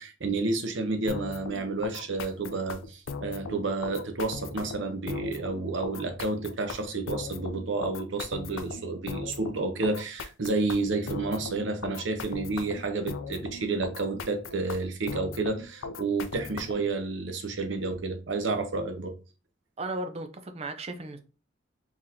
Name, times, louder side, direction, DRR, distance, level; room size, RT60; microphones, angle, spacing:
voice 1, 0.0-19.1, right 3 dB, 70° right, 0.7 m, -30 dB
sound 1, 1.1-16.9, left 4 dB, 80° left, 0.4 m, -39 dB
voice 2, 19.8-21.2, right 2 dB, 30° right, 0.5 m, -35 dB
3.9 x 2.9 x 2.6 m
head